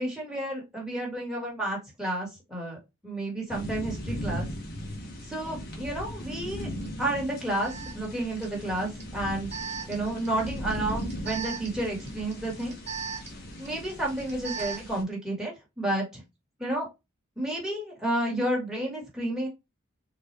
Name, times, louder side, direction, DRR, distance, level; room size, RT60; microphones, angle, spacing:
voice 1, 0.0-4.5 5.2-6.7 7.0-9.5 9.9-12.7 13.6-16.2 16.6-16.9 17.4-19.5, right 1 dB, 5° right, -3 dB, 1.7 m, -31 dB
sound 1, 3.5-15.0, equal, 50° left, 1.2 m, -38 dB
Alarm, 6.8-6.9 7.6-15.0, right 6 dB, 35° right, 1.3 m, -40 dB
4.1 x 3.0 x 3.3 m, 0.23 s
head